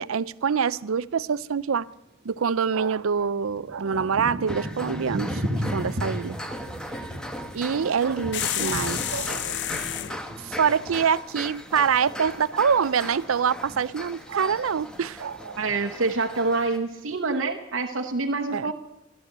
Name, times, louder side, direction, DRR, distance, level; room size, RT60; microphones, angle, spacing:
voice 1, 0.0-1.9 2.2-6.5 7.5-9.9 10.4-15.7 18.5-18.7, right 6 dB, 90° right, 0.5 m, -25 dB
Thunder / Rain, 3.2-12.7 13.0-13.9 14.4-14.8 15.0-15.9 16.5-16.6, equal, 55° right, 1.3 m, -35 dB
sound 1, 4.5-16.8, equal, 5° left, 1.0 m, -38 dB
sound 2, 8.3-10.2, left 12 dB, 55° left, 0.6 m, -29 dB
voice 2, 15.6-18.7, right 3 dB, 70° right, 1.0 m, -26 dB
15.0 x 12.0 x 7.9 m
head